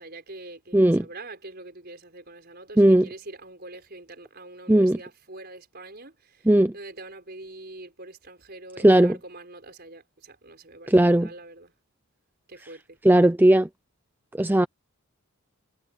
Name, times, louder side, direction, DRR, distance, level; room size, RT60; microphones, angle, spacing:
voice 1, 0.0-6.5 6.7-10.9 11.2-11.7 12.5-13.0, right 2 dB, 45° right, 5.3 m, -44 dB
voice 2, 0.7-1.1 2.8-3.1 4.7-5.0 6.5-6.7 8.8-9.2 10.9-11.3 13.0-13.7 14.3-14.7, right 1 dB, 10° right, 0.4 m, -17 dB
head